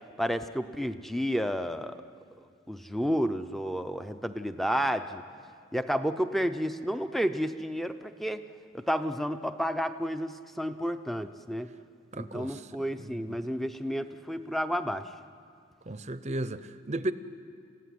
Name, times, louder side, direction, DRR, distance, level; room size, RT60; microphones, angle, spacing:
voice 1, 0.2-2.0 2.7-5.2 5.7-8.4 8.7-11.7 12.1-15.1, equal, ahead, 0.6 m, -31 dB
voice 2, 12.1-12.7 13.0-13.4 15.9-17.1, right 1 dB, 35° right, 0.7 m, -35 dB
29.0 x 15.5 x 9.6 m
head